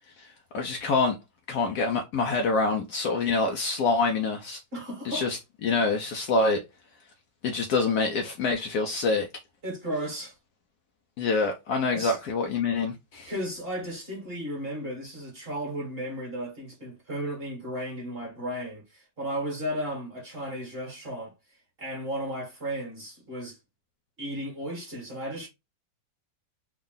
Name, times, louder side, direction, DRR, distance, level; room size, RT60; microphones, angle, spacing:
voice 1, 0.5-1.2 1.5-4.6 5.0-6.6 7.4-9.3 11.2-13.3, left 3 dB, 70° left, 1.0 m, -26 dB
voice 2, 4.7-5.3 9.6-10.3 11.9-12.2 13.3-21.3 21.8-23.6 24.2-25.5, equal, 35° right, 1.6 m, -34 dB
3.6 x 2.4 x 3.8 m
omnidirectional pair, 2.0 m